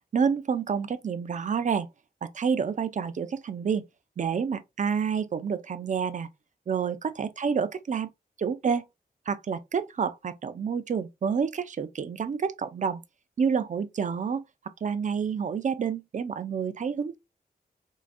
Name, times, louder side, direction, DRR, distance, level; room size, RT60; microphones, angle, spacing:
voice 1, 0.1-1.9 2.2-3.8 4.2-6.3 6.7-8.1 8.4-8.8 9.3-13.0 13.4-14.4 14.8-17.2, right 6 dB, 50° right, 0.4 m, -28 dB
3.7 x 3.3 x 2.5 m
wide cardioid pair, 105°, 17 cm